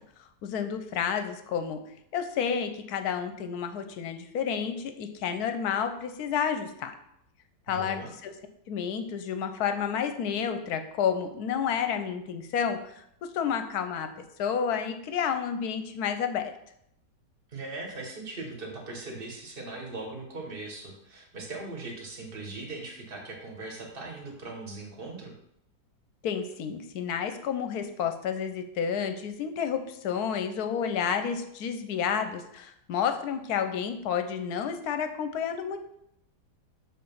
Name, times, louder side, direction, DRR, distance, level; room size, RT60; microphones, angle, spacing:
voice 1, 0.4-1.8 2.1-6.9 7.7-8.3 8.7-14.1 14.4-16.5 26.2-35.8, left 7 dB, 70° left, 8 dB, 1.1 m, -30 dB
voice 2, 7.7-8.1 17.5-25.3, right 2 dB, 35° right, 0 dB, 1.5 m, -39 dB
6.6 x 4.0 x 5.4 m, 0.75 s
omnidirectional pair, 1.9 m